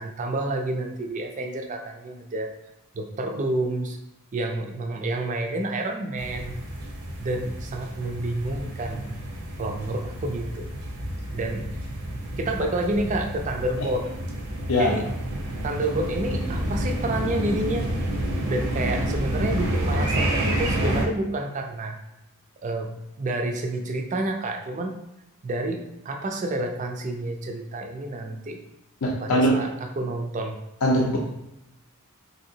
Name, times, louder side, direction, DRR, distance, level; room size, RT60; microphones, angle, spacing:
voice 1, 0.0-2.5 2.9-4.0 4.3-6.6 7.2-9.1 9.6-10.7 11.3-11.7 12.4-14.1 14.8-15.1 15.6-17.9 18.5-22.0 22.6-25.0 25.4-28.6 29.2-30.6, right 2 dB, 35° right, 3 dB, 0.3 m, -29 dB
sound 1, 6.2-21.1, right 1 dB, 75° right, 0.6 m, -29 dB
voice 2, 29.0-29.6 30.8-31.2, equal, 65° left, -2 dB, 0.5 m, -21 dB
3.5 x 2.7 x 2.6 m, 0.87 s
head